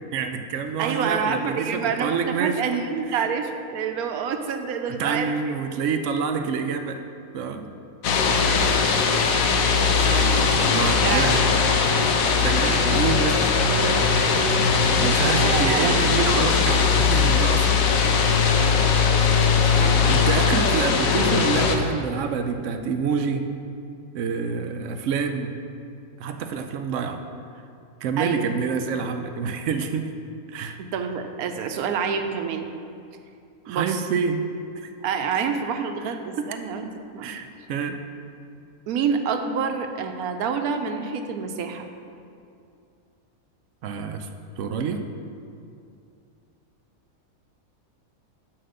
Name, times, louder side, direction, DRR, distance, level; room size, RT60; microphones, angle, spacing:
voice 1, 0.1-2.6 4.9-7.0 7.3-7.7 9.0-9.3 9.9-11.4 12.2-13.4 13.9-14.2 14.9-17.8 20.0-23.5 24.1-25.6 26.2-27.2 28.0-30.1 30.5-30.8 33.7-34.4 34.8-34.9 36.4-36.5 37.2-38.0 43.8-44.3 44.6-45.1, right 5 dB, 70° right, 7 dB, 0.8 m, -27 dB
voice 2, 0.8-5.3 9.1-11.7 12.7-12.8 15.4-16.0 19.7-20.3 28.2-28.6 30.8-32.7 33.7-34.0 35.0-36.8 37.1-37.3 38.9-41.9, right 6 dB, 85° right, 6 dB, 1.1 m, -28 dB
sound 1, 8.0-21.8, left 5 dB, 75° left, 1.1 m, -20 dB
5.8 x 5.4 x 6.5 m, 2.5 s
omnidirectional pair, 1.5 m